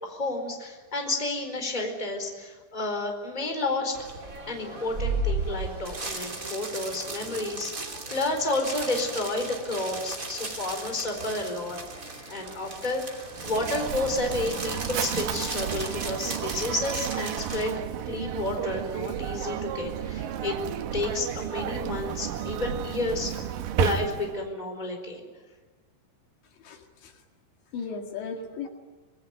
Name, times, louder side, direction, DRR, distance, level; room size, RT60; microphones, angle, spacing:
voice 1, 0.0-4.0 4.5-11.8 12.3-17.7 18.1-20.6 20.9-23.4 23.8-25.2, left 2 dB, 10° left, 4 dB, 4.0 m, -31 dB
sound 1, 3.9-17.6, right 2 dB, 20° right, 2.7 m, -36 dB
Mechanisms, 13.3-24.5, right 10 dB, 85° right, 1.9 m, -32 dB
voice 2, 26.5-27.2 27.7-28.7, left 5 dB, 70° left, 3 dB, 4.3 m, -37 dB
26.5 x 21.5 x 9.6 m, 1.3 s
omnidirectional pair, 5.4 m